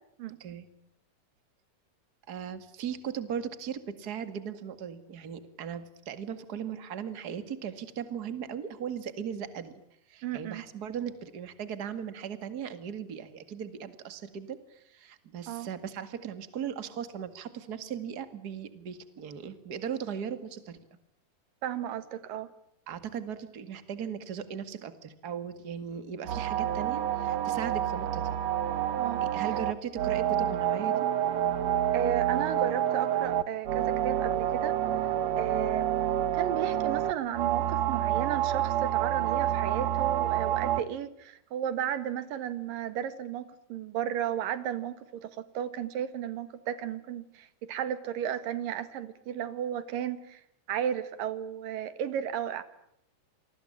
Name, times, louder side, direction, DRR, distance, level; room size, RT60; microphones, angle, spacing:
voice 1, 2.3-9.7 10.1-20.8 22.9-28.4 29.3-31.1, right 8 dB, 35° right, 11 dB, 2.1 m, -38 dB
voice 2, 10.2-10.6 15.5-15.7 21.6-22.5 29.0-29.2 31.9-34.8 35.4-35.9 36.2-50.4 50.7-52.6, right 9 dB, 90° right, 13 dB, 3.3 m, -34 dB
sound 1, 26.3-40.8, right 11 dB, 60° right, 2.1 m, -28 dB
28.0 x 20.5 x 8.8 m, 0.73 s
omnidirectional pair, 3.8 m